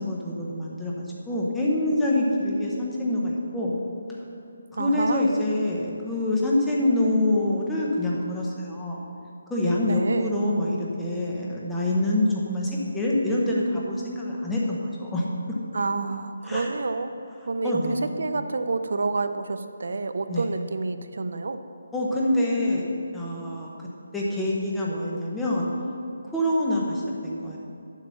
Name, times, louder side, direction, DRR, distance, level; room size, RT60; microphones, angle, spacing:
voice 1, 0.0-3.8 4.8-9.0 9.5-15.2 16.4-16.7 17.6-18.1 20.3-20.5 21.9-22.8 23.1-23.7 24.1-25.7 26.3-27.6, left 1 dB, 5° left, -5 dB, 0.8 m, -25 dB
voice 2, 4.7-5.3 9.8-10.3 15.7-17.1 17.5-21.6, right 3 dB, 65° right, 9 dB, 0.6 m, -28 dB
8.6 x 7.4 x 5.6 m, 2.5 s
hypercardioid pair, 175°, 0 cm